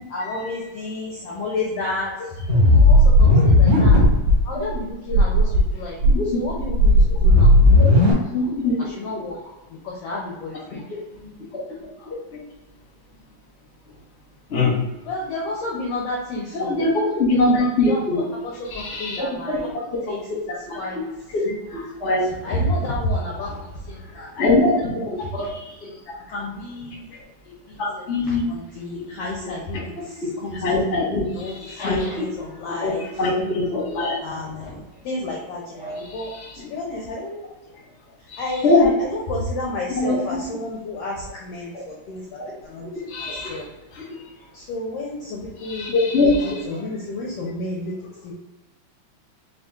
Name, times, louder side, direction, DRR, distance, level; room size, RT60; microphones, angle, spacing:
voice 1, 0.1-2.1 2.5-4.0 4.4-6.0 6.2-7.5 8.8-9.4 9.8-10.9 15.0-16.8 17.9-19.8 20.1-20.3 20.7-21.0 22.3-23.5 23.9-24.5 26.3-27.0 27.7-30.8 31.3-33.1 34.2-36.3 36.6-37.4 38.4-42.2 42.6-42.9 43.2-43.6 44.5-47.9 48.2-48.3, left 2 dB, 75° left, -3 dB, 1.4 m, -31 dB
sound 1, 2.5-4.4 4.7-4.8 5.1-5.6 6.0-8.1, left 1 dB, 50° right, 1.4 m, -14 dB
voice 2, 8.3-8.7 11.2-11.4 14.5-14.8 16.5-18.2 18.7-19.6 20.7-20.8 21.4-22.2 23.4-23.5 24.4-25.9 27.8-28.5 29.7-29.8 30.6-31.3 31.6-32.1 32.7-34.1 35.8-35.9 36.6-36.7 38.3-38.9 39.9-40.2 43.1-43.6 43.9-44.0 45.6-46.5, left 2 dB, 55° left, -4 dB, 0.8 m, -22 dB
5.2 x 2.4 x 3.5 m, 1.0 s
omnidirectional pair, 3.5 m